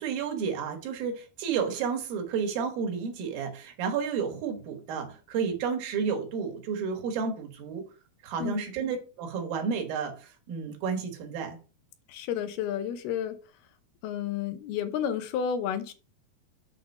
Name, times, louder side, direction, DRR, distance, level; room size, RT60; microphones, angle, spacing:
voice 1, 0.0-7.8 8.2-11.6, right 6 dB, 70° right, 3.1 m, -31 dB
voice 2, 12.1-13.4 14.0-15.9, left 8 dB, 90° left, 2.9 m, -31 dB
8.4 x 3.8 x 5.4 m
omnidirectional pair, 4.3 m